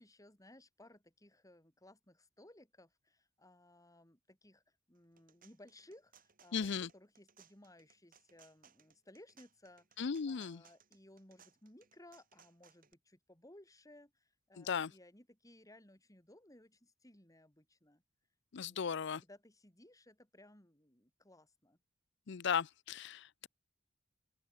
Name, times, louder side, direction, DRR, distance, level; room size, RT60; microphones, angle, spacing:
voice 1, 0.0-18.0 18.6-21.8, left 1 dB, 15° left, 4.8 m, -61 dB
sound 1, 4.9-12.9, right 7 dB, 45° right, 7.8 m, -66 dB
voice 2, 6.5-6.9 10.0-10.6 14.6-14.9 18.5-19.2 22.3-23.5, left 6 dB, 65° left, 0.5 m, -36 dB
open air
head